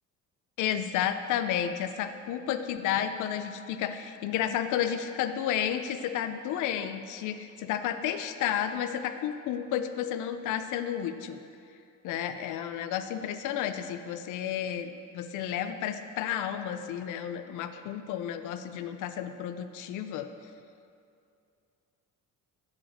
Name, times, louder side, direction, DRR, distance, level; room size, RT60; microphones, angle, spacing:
voice 1, 0.6-11.4 12.0-20.3, left 9 dB, 75° left, 9 dB, 0.6 m, -32 dB
7.4 x 5.2 x 7.2 m, 2.5 s
cardioid pair, 175°, 31 cm